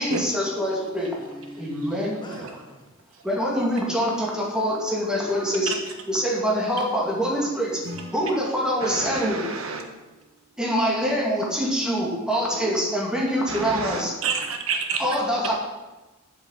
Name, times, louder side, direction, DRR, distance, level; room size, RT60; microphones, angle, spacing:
voice 1, 0.0-1.1 1.7-2.1 3.3-5.7 6.1-7.7 8.1-9.4 10.6-14.1 15.0-15.5, equal, 5° right, 2.2 m, -24 dB
voice 2, 0.9-2.9 13.8-14.0, left 1 dB, 20° left, 1.5 m, -44 dB
Acoustic guitar / Strum, 7.8-11.0, equal, 55° right, 1.6 m, -44 dB
voice 3, 8.8-9.8 13.5-15.1, right 5 dB, 75° right, 1.5 m, -29 dB
7.8 x 6.8 x 8.1 m
head